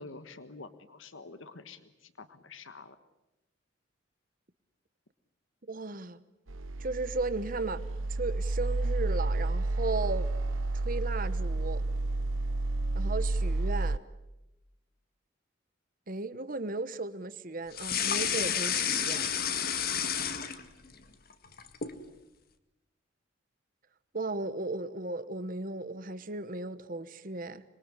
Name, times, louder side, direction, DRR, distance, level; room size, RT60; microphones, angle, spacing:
voice 1, 0.0-3.0, left 3 dB, 80° left, 1.5 m, -48 dB
voice 2, 5.7-6.2 6.8-7.8 8.1-10.3 10.7-11.8 12.9-14.0 16.1-19.3 24.1-27.6, right 3 dB, 45° right, 1.1 m, -35 dB
sound 1, 6.5-14.0, right 2 dB, 85° right, 1.0 m, -30 dB
sound 2, 17.7-20.9 21.3-22.0, left 8 dB, 50° left, 1.9 m, -30 dB
26.5 x 22.5 x 9.9 m
head